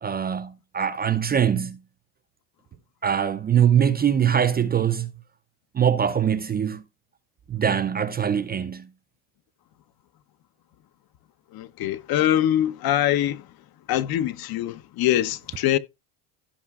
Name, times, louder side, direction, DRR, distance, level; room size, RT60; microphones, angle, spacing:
voice 1, 0.0-1.8 3.0-5.1 5.7-6.8 7.5-8.9, right 8 dB, 20° right, 0.4 m, -22 dB
voice 2, 11.5-13.5 13.9-15.8, left 12 dB, 55° left, 0.8 m, -23 dB
15.5 x 5.5 x 2.4 m
supercardioid pair, 95°, 45 cm